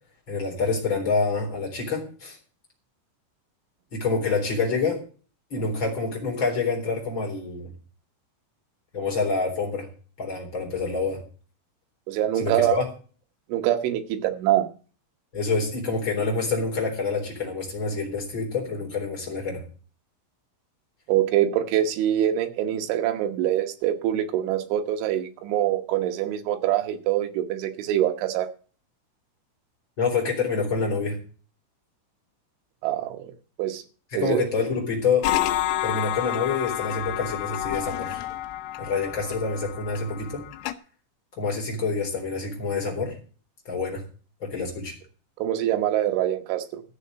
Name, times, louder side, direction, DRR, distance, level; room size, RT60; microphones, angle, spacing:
voice 1, 0.3-2.4 3.9-5.0 5.5-7.7 8.9-9.9 10.2-11.2 12.4-12.8 15.3-19.6 30.0-31.2 34.1-35.3 35.8-38.2 38.8-40.4 41.4-43.1 43.7-44.0 44.4-44.9, left 4 dB, 25° left, 0 dB, 3.9 m, -27 dB
voice 2, 12.1-12.8 13.5-14.7 21.1-28.5 32.8-33.3 33.6-33.8 34.1-34.4 45.4-46.8, right 12 dB, 75° right, 5 dB, 3.4 m, -24 dB
sound 1, 35.2-40.7, left 14 dB, 85° left, 3.5 m, -29 dB
13.5 x 7.0 x 6.5 m, 0.39 s
omnidirectional pair, 6.0 m